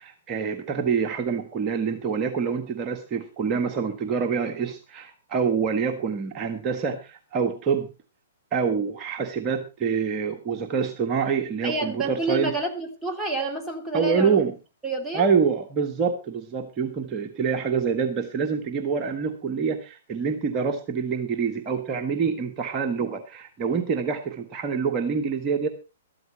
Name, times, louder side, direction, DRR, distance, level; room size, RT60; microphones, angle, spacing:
voice 1, 0.0-7.9 8.5-12.5 13.9-14.5 15.1-25.7, right 6 dB, 30° right, 4 dB, 1.6 m, -26 dB
voice 2, 11.6-14.4 14.8-15.3, right 2 dB, ahead, 0 dB, 2.7 m, -29 dB
13.5 x 13.0 x 4.3 m, 0.30 s
figure-of-eight pair, 120°, 0 cm